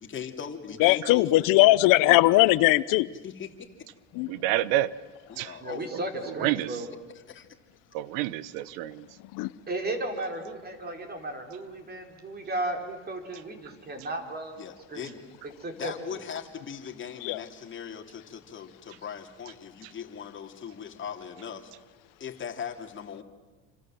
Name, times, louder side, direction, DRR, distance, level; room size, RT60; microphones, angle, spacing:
voice 1, 0.0-1.7 3.1-3.5 5.3-5.9 7.3-7.5 14.6-15.2 15.7-21.7 22.2-23.2, left 7 dB, 35° left, 4 dB, 3.0 m, -39 dB
voice 2, 0.8-3.1 4.1-4.3 9.3-9.5 17.2-17.4, left 18 dB, 65° left, 17 dB, 0.9 m, -20 dB
voice 3, 4.3-4.9 5.4-5.5 6.4-6.7 7.9-9.0, right 15 dB, 80° right, 18 dB, 1.2 m, -28 dB
voice 4, 5.6-6.9 9.7-14.6 14.9-15.1 15.6-16.2, right 2 dB, 25° right, 5 dB, 4.9 m, -34 dB
28.0 x 26.5 x 7.7 m, 1.2 s
supercardioid pair, 120°, 35 cm